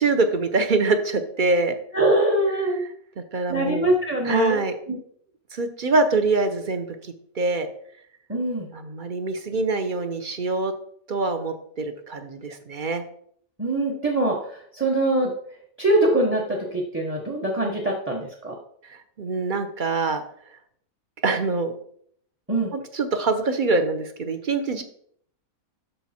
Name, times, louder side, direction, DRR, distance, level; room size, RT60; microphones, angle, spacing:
voice 1, 0.0-1.8 3.3-3.9 4.2-4.7 5.5-7.7 8.7-10.7 11.1-13.0 18.9-20.2 21.2-21.7 22.7-24.8, right 3 dB, 40° right, 8 dB, 0.9 m, -24 dB
voice 2, 1.9-2.8 3.5-5.0 8.3-8.7 13.6-15.3 15.8-18.6 22.5-22.7, right 1 dB, 10° right, 0 dB, 1.0 m, -23 dB
12.5 x 4.6 x 4.3 m, 0.64 s
omnidirectional pair, 1.5 m